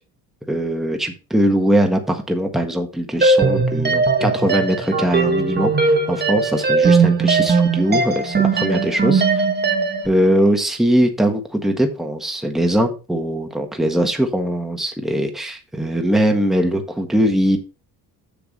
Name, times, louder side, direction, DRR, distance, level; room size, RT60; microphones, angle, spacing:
voice 1, 0.5-9.4 10.0-17.6, equal, ahead, 4 dB, 1.5 m, -20 dB
sound 1, 3.2-10.1, right 4 dB, 25° right, 1.5 m, -18 dB
7.0 x 7.0 x 4.2 m, 0.32 s
cardioid pair, 105°, 39 cm